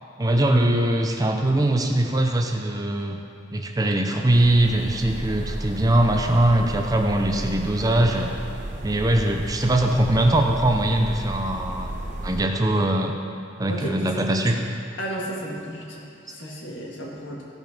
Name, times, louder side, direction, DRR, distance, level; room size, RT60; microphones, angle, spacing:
voice 1, 0.2-3.2 3.5-8.3 8.8-11.9 12.2-13.2 13.6-14.6, right 1 dB, 20° right, 3 dB, 0.6 m, -21 dB
sound 1, 4.3-12.4, right 1 dB, 40° right, 1.1 m, -33 dB
voice 2, 13.7-14.2 15.0-17.4, right 1 dB, 70° left, -2 dB, 2.0 m, -33 dB
15.0 x 5.4 x 5.9 m, 2.5 s
head